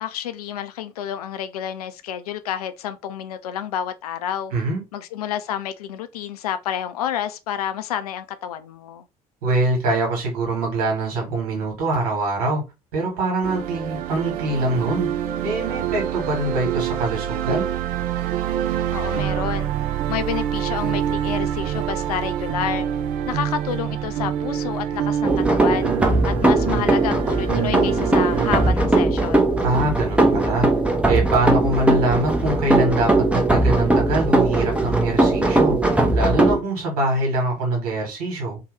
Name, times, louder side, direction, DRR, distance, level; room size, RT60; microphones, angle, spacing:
voice 1, 0.0-4.5 4.9-9.0 18.9-19.7 20.1-22.9 23.3-25.9 26.2-29.6, left 9 dB, 75° left, 0.4 m, -29 dB
voice 2, 4.5-4.8 9.4-12.6 12.9-15.1 15.4-17.7 29.6-35.8 36.1-38.6, right 2 dB, 65° right, 1.3 m, -24 dB
sound 1, 13.4-28.7, right 10 dB, 50° right, 0.4 m, -26 dB
sound 2, 25.2-36.6, right 2 dB, 5° right, 0.6 m, -19 dB
2.7 x 2.2 x 3.2 m
figure-of-eight pair, 55°, 20 cm